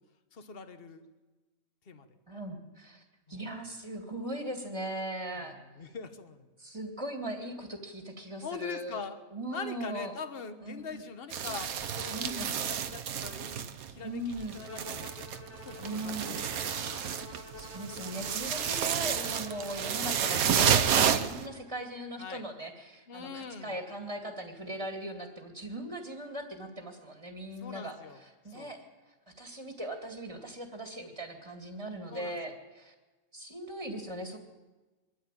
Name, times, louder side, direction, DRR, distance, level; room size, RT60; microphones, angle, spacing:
voice 1, 0.3-1.0 1.9-2.1 3.3-3.5 5.5-6.5 8.4-9.2 9.5-15.1 15.6-16.3 22.2-22.5 23.1-23.8 27.6-28.2 28.5-28.7 32.1-32.5, left 5 dB, 40° left, 8 dB, 1.4 m, -43 dB
voice 2, 2.3-3.0 3.3-5.6 6.6-9.0 9.3-10.1 10.6-11.0 12.1-12.5 14.0-14.6 15.8-16.4 17.3-32.9 33.3-34.4, right 1 dB, 20° right, 3 dB, 2.1 m, -39 dB
sound 1, 11.3-14.0 14.3-21.5, right 8 dB, 70° right, 1.3 m, -30 dB
Bowed string instrument, 14.6-20.4, left 2 dB, 10° left, 1.0 m, -48 dB
22.5 x 13.5 x 9.0 m, 1.2 s
omnidirectional pair, 1.6 m